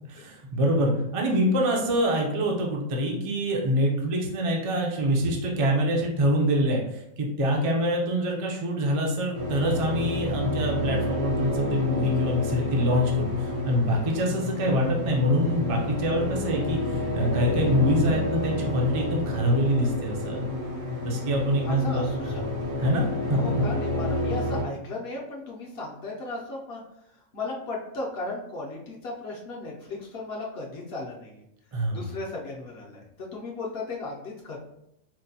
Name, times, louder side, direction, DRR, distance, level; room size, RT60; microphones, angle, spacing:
voice 1, 0.2-20.4 21.0-22.1 22.8-23.4 31.7-32.1, equal, 50° right, -1 dB, 0.4 m, -25 dB
sound 1, 9.3-24.6, left 1 dB, 90° right, 1.5 m, -29 dB
voice 2, 21.6-22.7 23.3-26.8 27.3-31.4 31.9-34.6, left 3 dB, 60° left, -3 dB, 0.7 m, -36 dB
4.4 x 2.1 x 2.7 m, 0.81 s
omnidirectional pair, 1.4 m